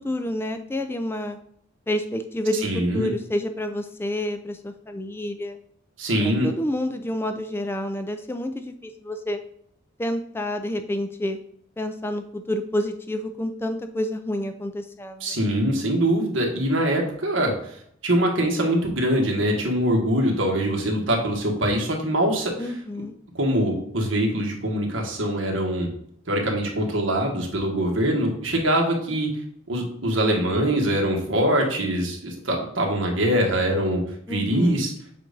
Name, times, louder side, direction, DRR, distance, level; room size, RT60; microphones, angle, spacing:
voice 1, 0.0-1.4 1.9-5.6 6.2-9.4 10.0-11.4 11.8-15.3 22.6-23.1 34.3-34.8, left 1 dB, 10° left, 7 dB, 0.3 m, -29 dB
voice 2, 2.6-3.1 6.0-6.5 15.2-17.8 18.0-22.7 23.3-25.9 26.3-29.3 29.7-34.0 34.3-34.9, right 1 dB, 70° right, 0 dB, 1.5 m, -23 dB
7.5 x 2.6 x 5.2 m, 0.70 s
head